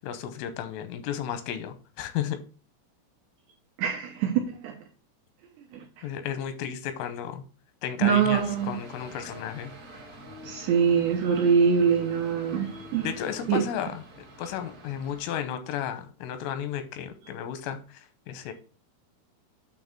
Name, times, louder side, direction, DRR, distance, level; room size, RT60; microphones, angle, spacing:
voice 1, 0.0-2.4 6.0-7.4 7.8-9.7 13.0-14.0 14.4-18.5, left 9 dB, 85° left, 3.3 m, -33 dB
voice 2, 3.8-4.8 5.7-5.8 8.0-8.8 10.4-13.1 13.5-13.6, right 7 dB, 80° right, 2.5 m, -24 dB
sound 1, 8.2-15.4, equal, 35° right, 1.5 m, -46 dB
8.8 x 3.3 x 5.9 m
omnidirectional pair, 5.9 m